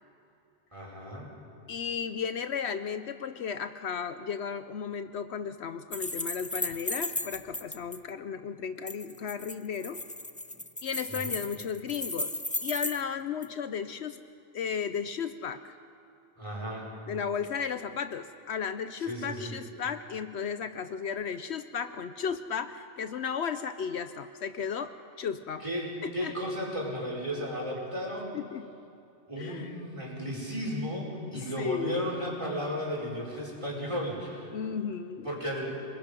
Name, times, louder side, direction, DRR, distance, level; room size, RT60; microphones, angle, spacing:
voice 1, 0.7-1.3 11.1-11.3 16.4-16.9 19.1-19.5 25.6-28.3 29.3-34.5 35.2-35.6, equal, 25° right, -3 dB, 5.2 m, -34 dB
voice 2, 1.7-10.0 10.8-12.3 12.6-14.2 14.5-15.8 17.1-25.6 26.0-26.3 28.3-28.7 29.4-29.8 31.3-32.0 34.5-35.3, left 7 dB, 70° left, 10 dB, 0.9 m, -34 dB
sound 1, 5.9-8.0 8.9-13.0 13.4-13.5, left 1 dB, 10° left, 0.3 m, -35 dB
29.0 x 21.0 x 5.3 m, 2.6 s
omnidirectional pair, 1.2 m